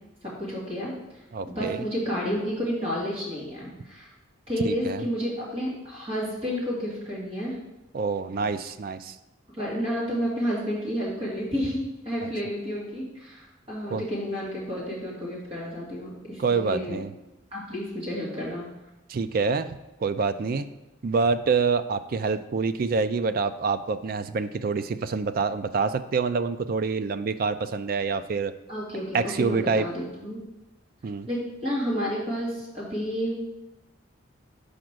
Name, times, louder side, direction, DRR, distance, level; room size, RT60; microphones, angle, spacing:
voice 1, 0.4-4.1 4.5-7.6 9.6-17.0 17.5-18.6 28.7-30.4 31.3-33.4, equal, 30° right, -6 dB, 2.3 m, -31 dB
voice 2, 1.3-1.8 4.6-5.0 7.9-9.2 12.2-12.3 13.9-14.0 16.4-17.1 19.1-19.7 20.0-20.7 21.0-28.5 29.1-29.9 31.0-31.3, right 4 dB, 45° right, 11 dB, 0.3 m, -26 dB
5.1 x 5.0 x 6.1 m, 0.98 s
head